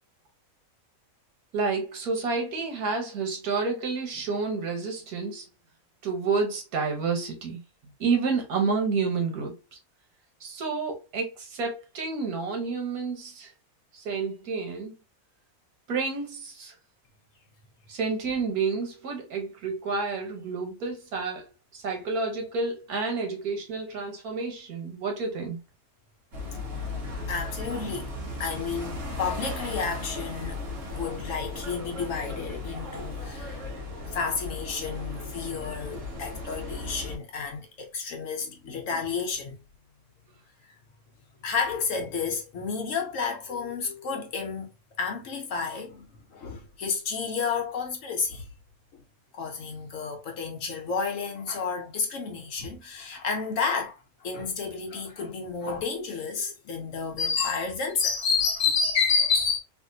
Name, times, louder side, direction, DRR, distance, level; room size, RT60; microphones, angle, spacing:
voice 1, 1.5-5.5 6.0-7.6 8.0-9.5 10.4-13.5 13.9-14.9 15.9-16.7 17.9-25.6, right 4 dB, 85° right, 1.5 m, -29 dB
sound 1, 26.3-37.2, left 2 dB, 60° right, 1.5 m, -36 dB
voice 2, 27.3-28.1 28.4-33.7 34.1-39.6 40.6-40.7 41.4-44.7 45.0-48.5 49.3-59.6, left 5 dB, 65° left, 1.0 m, -30 dB
3.4 x 2.5 x 2.6 m
omnidirectional pair, 1.5 m